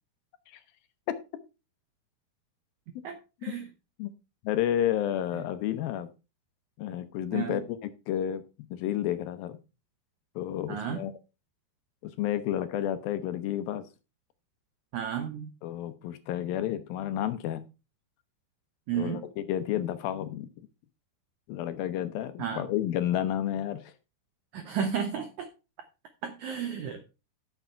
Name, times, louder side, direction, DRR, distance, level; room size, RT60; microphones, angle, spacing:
voice 1, 3.0-3.7 5.3-5.4 7.3-7.6 10.7-11.1 14.9-15.5 18.9-19.2 22.4-22.7 24.5-25.5 26.2-27.0, right 8 dB, 80° right, 8 dB, 1.7 m, -33 dB
voice 2, 4.4-6.1 6.8-8.4 8.7-9.6 10.4-11.1 12.0-13.8 15.6-17.6 19.0-20.5 21.5-23.9, left 11 dB, 75° left, 11 dB, 2.4 m, -31 dB
11.5 x 6.8 x 4.4 m, 0.30 s
omnidirectional pair, 4.6 m